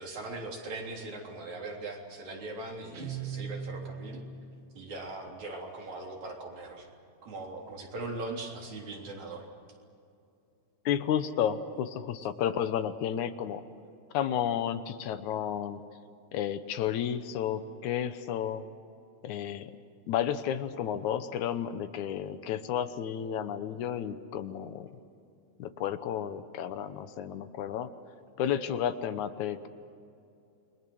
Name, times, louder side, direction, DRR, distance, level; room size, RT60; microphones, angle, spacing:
voice 1, 0.0-4.2 4.7-6.9 7.2-9.5, right 2 dB, 75° right, 0 dB, 4.9 m, -40 dB
Guitar, 2.9-4.6, right 6 dB, 50° right, 2.4 m, -39 dB
voice 2, 10.9-13.6 14.1-15.8 16.3-18.6 19.2-19.7 20.1-24.9 25.6-27.9 28.4-29.7, left 9 dB, 85° left, 11 dB, 2.5 m, -32 dB
28.5 x 22.5 x 6.3 m, 2.6 s
omnidirectional pair, 3.3 m